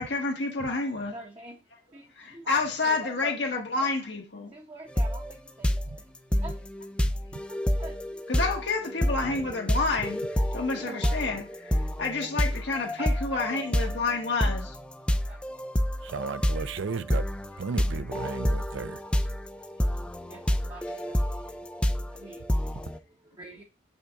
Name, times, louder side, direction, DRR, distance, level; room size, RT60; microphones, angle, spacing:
voice 1, 0.0-1.2 2.2-4.5 8.3-14.8, left 3 dB, 70° left, 1.2 m, -29 dB
voice 2, 1.1-3.9 4.5-6.7 7.5-8.3 8.8-9.6 10.4-11.3 11.6-12.6 13.0-14.0 15.3-16.5 18.3-21.5 21.7-23.6, right 1 dB, 25° right, 0.9 m, -47 dB
sound 1, 5.0-5.3 5.6-23.0, equal, 5° left, 0.4 m, -28 dB
voice 3, 16.0-17.3 17.6-19.0, right 4 dB, 85° right, 0.5 m, -34 dB
6.4 x 5.6 x 3.5 m
head